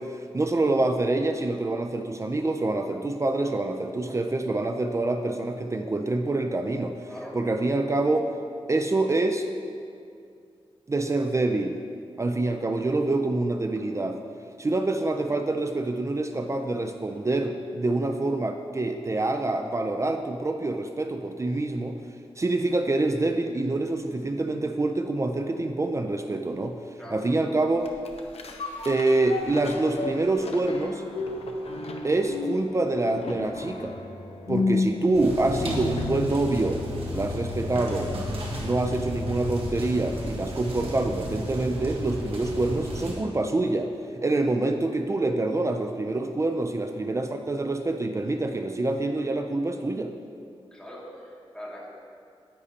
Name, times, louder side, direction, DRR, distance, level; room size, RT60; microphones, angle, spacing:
voice 1, 0.0-7.1 7.3-8.3 8.7-9.5 10.9-11.8 12.2-14.2 14.6-22.0 22.4-26.8 27.1-27.9 28.9-31.0 32.0-34.0 34.5-36.8 37.1-38.1 38.6-50.1, right 2 dB, 30° right, 5 dB, 0.5 m, -26 dB
voice 2, 7.1-7.4 27.0-27.2 46.8-46.9 50.7-51.9, equal, 5° left, -6 dB, 2.2 m, -41 dB
sound 1, 27.8-36.4 36.8-36.9, left 3 dB, 80° left, 0.7 m, -32 dB
sound 2, 35.1-43.1, left 1 dB, 70° right, 1.6 m, -33 dB
10.0 x 9.5 x 2.8 m, 2.4 s
wide cardioid pair, 95°, 10 cm